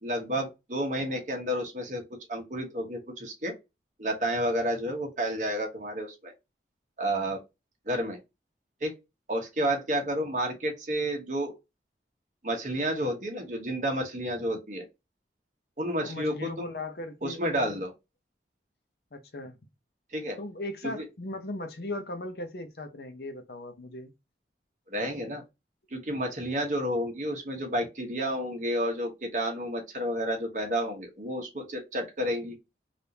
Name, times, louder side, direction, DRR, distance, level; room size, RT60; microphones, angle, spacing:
voice 1, 0.0-2.0 2.3-3.5 4.0-6.3 7.0-7.4 7.9-8.2 8.8-8.9 9.3-11.5 12.4-14.8 15.8-16.6 17.2-17.9 20.1-20.4 20.8-21.0 24.9-25.4 25.9-32.6, equal, 45° right, 1.0 m, -30 dB
voice 2, 16.0-17.8 19.1-19.6 20.4-24.1, left 2 dB, 60° left, 0.7 m, -38 dB
3.4 x 2.5 x 2.8 m
head